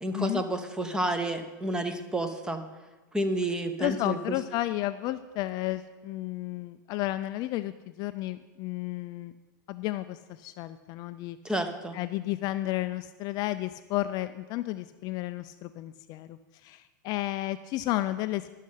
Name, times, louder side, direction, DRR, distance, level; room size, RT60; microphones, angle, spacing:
voice 1, 0.0-2.6 3.1-4.4 11.4-12.0, right 1 dB, 5° right, 8 dB, 0.8 m, -30 dB
voice 2, 3.8-9.3 9.7-11.4 11.9-18.5, left 15 dB, 40° left, 11 dB, 0.4 m, -32 dB
11.5 x 6.4 x 5.6 m, 1.2 s
hypercardioid pair, 120°, 11 cm